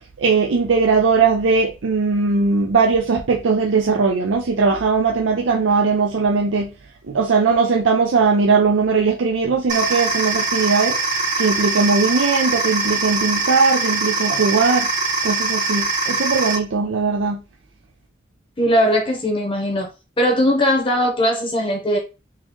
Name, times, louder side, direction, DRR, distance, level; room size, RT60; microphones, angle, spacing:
voice 1, 0.2-6.7 7.1-11.0 11.4-14.9 15.2-17.4, right 4 dB, 85° right, 0.5 m, -19 dB
sound 1, 9.7-16.6, right 3 dB, 40° right, 1.4 m, -22 dB
voice 2, 18.6-19.9 20.2-22.0, equal, 30° left, 0.8 m, -19 dB
3.7 x 2.9 x 3.0 m
head